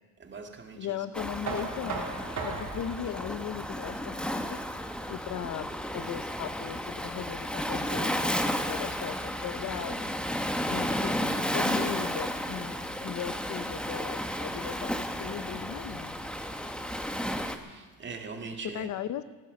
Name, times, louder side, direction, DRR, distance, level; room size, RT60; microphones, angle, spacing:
voice 1, 0.2-1.0 17.5-18.9, right 4 dB, 30° right, 4 dB, 2.0 m, -41 dB
voice 2, 0.7-2.0 2.4-4.6 5.1-10.3 10.7-16.2 18.7-19.2, left 10 dB, 45° left, 14 dB, 0.9 m, -38 dB
Waves surf, 1.1-17.6, equal, ahead, 1.0 m, -33 dB
Knock, 1.5-7.3, right 4 dB, 45° right, 3.3 m, -40 dB
15.0 x 14.5 x 6.4 m, 1.3 s
cardioid pair, 120°, 40 cm